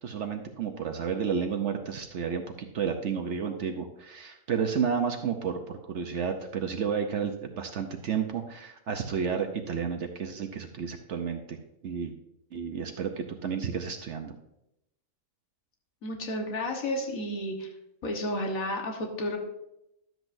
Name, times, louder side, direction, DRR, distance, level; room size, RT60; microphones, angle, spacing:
voice 1, 0.0-11.6 11.8-12.1 12.5-14.3, right 6 dB, 65° right, 4 dB, 1.0 m, -31 dB
voice 2, 16.0-17.7 18.0-19.4, left 1 dB, 80° left, 1 dB, 1.8 m, -32 dB
12.0 x 7.9 x 2.6 m, 0.84 s
omnidirectional pair, 1.4 m